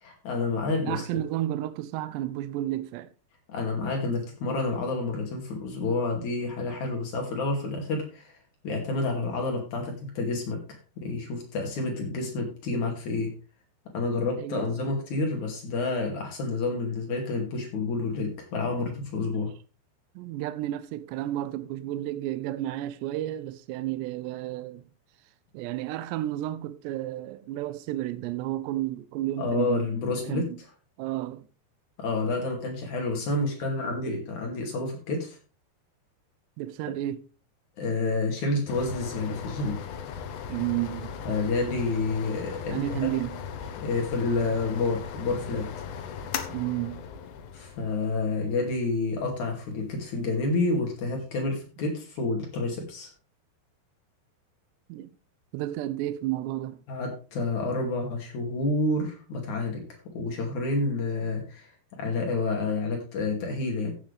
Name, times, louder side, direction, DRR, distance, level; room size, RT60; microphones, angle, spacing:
voice 1, 0.0-1.1 3.5-8.4 8.6-10.6 11.0-13.3 13.9-19.5 29.4-30.5 32.0-35.4 36.9-37.0 37.8-39.8 41.3-43.1 43.8-45.7 47.5-53.1 56.9-59.8 60.1-63.9, left 3 dB, 50° left, 3.5 m, -29 dB
voice 2, 0.8-3.1 14.4-14.8 15.1-15.2 20.2-24.9 25.5-29.9 30.2-30.6 31.0-31.5 34.1-34.2 36.6-37.2 40.5-41.2 42.7-43.4 46.5-47.0 54.9-55.1 55.5-56.8, right 14 dB, 80° right, 2.8 m, -32 dB
sound 1, 38.7-51.1, left 7 dB, 85° left, 1.7 m, -38 dB
14.5 x 7.7 x 3.4 m
omnidirectional pair, 5.0 m